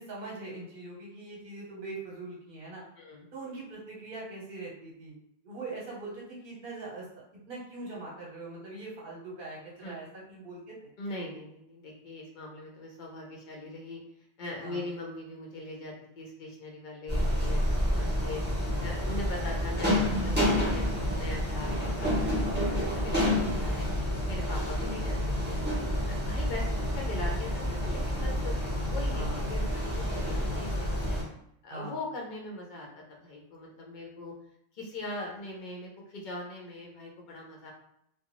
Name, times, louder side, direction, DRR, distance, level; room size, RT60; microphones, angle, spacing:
voice 1, 0.0-2.9 3.3-5.1 5.4-7.1 7.5-10.9 14.6-14.9 19.5-19.6 29.1-29.4 31.7-32.0, right 2 dB, 55° right, -4 dB, 1.1 m, -42 dB
voice 2, 3.0-3.3 9.8-10.0 11.0-14.0 14.4-18.4 18.8-23.9 24.3-25.7 26.1-31.2 31.6-34.3 34.7-37.7, left 2 dB, 50° left, -1 dB, 0.8 m, -41 dB
sound 1, 17.1-31.2, left 1 dB, 10° right, 0.9 m, -29 dB
2.4 x 2.3 x 3.0 m, 0.74 s
omnidirectional pair, 1.1 m